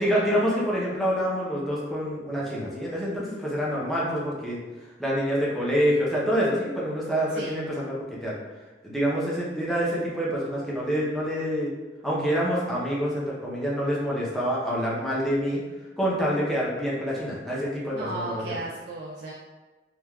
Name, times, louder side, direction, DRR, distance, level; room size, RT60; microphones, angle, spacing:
voice 1, 0.0-4.6 5.0-8.3 8.8-11.7 12.0-15.6 16.0-18.6, equal, ahead, -6 dB, 0.6 m, -26 dB
voice 2, 17.9-19.3, right 2 dB, 60° right, -4 dB, 0.3 m, -35 dB
3.3 x 2.3 x 2.2 m, 1.2 s
head